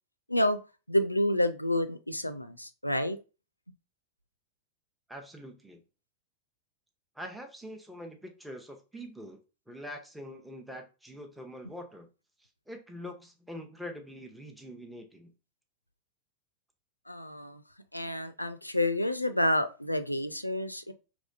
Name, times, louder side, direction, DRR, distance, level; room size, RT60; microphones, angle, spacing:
voice 1, 0.9-3.2 17.1-17.6 17.9-20.9, left 1 dB, 85° left, 0.4 m, -29 dB
voice 2, 5.1-5.8 7.1-9.4 9.7-12.1 12.4-15.3, equal, 5° right, 0.7 m, -44 dB
5.2 x 3.2 x 2.5 m
figure-of-eight pair, 90°, 0 cm